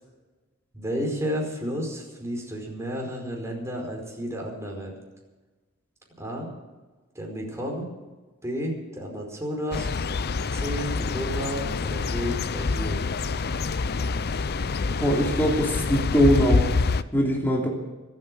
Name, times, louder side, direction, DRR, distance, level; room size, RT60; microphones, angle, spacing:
voice 1, 0.7-5.0 6.2-6.5 7.1-7.9 8.4-9.9 10.5-13.0, equal, 15° right, 0 dB, 5.0 m, -32 dB
sound 1, 9.7-17.0, left 4 dB, 50° left, 0.6 m, -26 dB
voice 2, 15.0-16.7 17.1-17.7, equal, 10° left, -1 dB, 2.9 m, -22 dB
24.5 x 9.1 x 6.4 m, 1.2 s
head